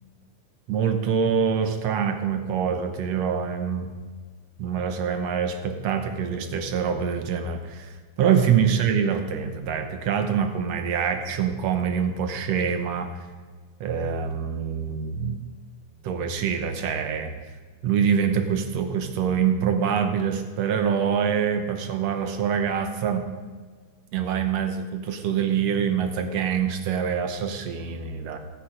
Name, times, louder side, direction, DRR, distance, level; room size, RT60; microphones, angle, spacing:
voice 1, 0.7-3.9 4.6-13.1 13.8-15.4 16.0-17.3 17.8-23.3 24.1-28.4, right 7 dB, 70° right, 7 dB, 2.1 m, -25 dB
17.5 x 8.6 x 5.1 m, 1.4 s
omnidirectional pair, 3.3 m